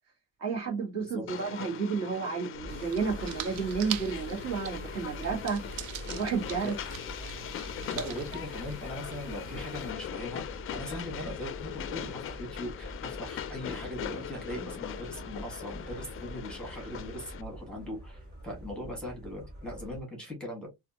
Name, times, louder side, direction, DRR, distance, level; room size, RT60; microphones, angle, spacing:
voice 1, 0.4-5.6 6.0-6.7, right 5 dB, 40° right, 1.6 m, -31 dB
Train, 1.3-17.4, left 11 dB, 35° left, 0.4 m, -41 dB
sound 1, 2.5-20.0, right 1 dB, 25° right, 2.3 m, -45 dB
sound 2, 2.7-9.9, right 11 dB, 60° right, 0.6 m, -43 dB
voice 2, 7.9-20.7, equal, ahead, 1.7 m, -40 dB
4.1 x 2.6 x 2.8 m
cardioid pair, 160°, 38 cm